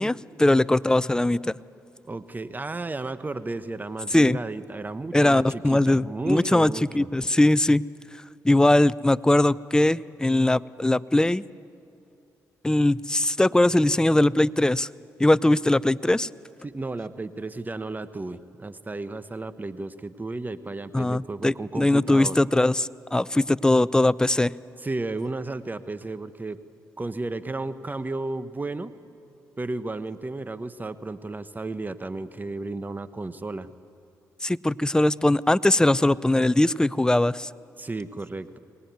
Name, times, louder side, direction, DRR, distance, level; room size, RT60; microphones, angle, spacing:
voice 1, 0.0-1.5 4.1-4.4 5.1-7.8 8.4-11.4 12.6-14.9 15.2-16.3 20.9-24.5 34.4-37.5, left 1 dB, 10° left, 19 dB, 0.5 m, -21 dB
voice 2, 2.0-7.1 16.6-22.4 24.8-26.6 27.0-28.9 29.6-33.7 37.8-38.6, right 2 dB, 25° right, 13 dB, 1.0 m, -33 dB
23.5 x 19.0 x 9.4 m, 2.6 s
cardioid pair, 65°, 7 cm